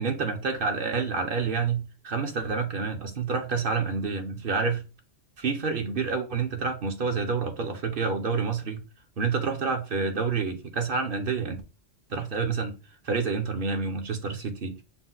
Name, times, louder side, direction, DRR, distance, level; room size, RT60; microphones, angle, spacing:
voice 1, 0.0-4.8 5.4-8.8 9.2-11.6 12.1-12.8 13.0-14.8, right 5 dB, 55° right, 0.9 m, -28 dB
5.9 x 2.2 x 3.9 m
omnidirectional pair, 1.1 m